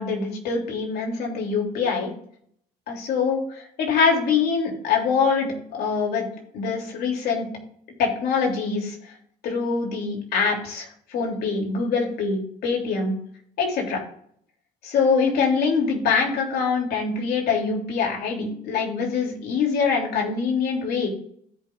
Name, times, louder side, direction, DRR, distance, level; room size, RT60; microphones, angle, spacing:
voice 1, 0.0-2.1 2.9-6.2 6.5-7.5 8.0-8.9 9.4-13.1 13.6-14.0 14.8-21.1, left 5 dB, 70° left, 0 dB, 3.2 m, -24 dB
16.0 x 5.5 x 2.6 m, 0.65 s
cardioid pair, 110°, 17 cm